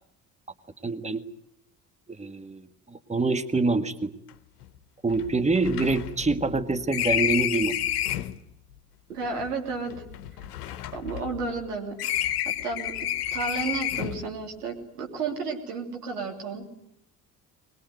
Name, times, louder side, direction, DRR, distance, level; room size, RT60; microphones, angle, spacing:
voice 1, 0.8-1.3 2.2-2.6 2.9-4.1 5.0-7.7, right 3 dB, 15° right, 10 dB, 1.6 m, -25 dB
sound 1, 4.3-4.4 4.6-4.7 5.1-8.4 9.2-11.7 12.0-14.3, left 11 dB, 85° left, 0.9 m, -30 dB
voice 2, 9.1-10.0 10.9-13.0 13.3-16.6, right 4 dB, 90° right, 0 dB, 3.2 m, -32 dB
22.5 x 21.0 x 9.3 m, 0.80 s
hypercardioid pair, 50°, 45 cm